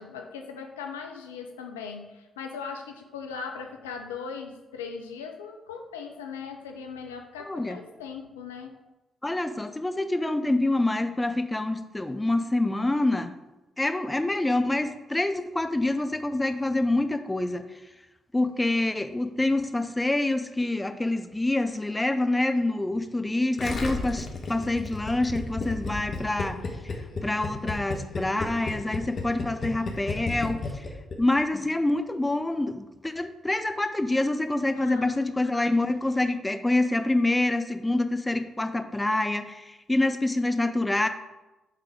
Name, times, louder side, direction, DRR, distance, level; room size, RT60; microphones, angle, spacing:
voice 1, 0.0-8.7 34.7-35.3, left 5 dB, 85° left, 4 dB, 0.5 m, -39 dB
voice 2, 7.4-7.8 9.2-13.3 13.8-17.6 18.3-26.6 27.2-30.8 31.2-41.1, left 2 dB, 15° left, 9 dB, 0.6 m, -26 dB
Gurgling, 23.6-31.2 31.4-31.5, left 3 dB, 50° left, 1.2 m, -32 dB
7.3 x 3.9 x 4.9 m, 1.1 s
figure-of-eight pair, 40°, 0 cm